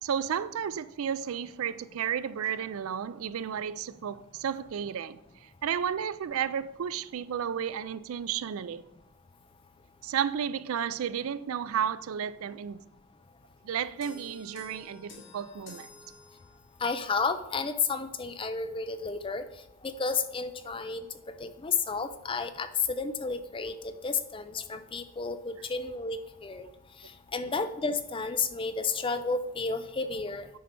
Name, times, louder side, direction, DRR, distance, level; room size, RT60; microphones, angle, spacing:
voice 1, 0.0-8.8 10.0-12.8 13.6-15.9, right 8 dB, 75° right, 0.4 m, -32 dB
sound 1, 14.0-16.9, left 4 dB, 55° left, 2.1 m, -51 dB
voice 2, 16.8-19.4 19.8-21.1 21.4-26.7 27.0-30.5, left 4 dB, 25° left, 0.4 m, -32 dB
9.3 x 5.3 x 4.4 m
head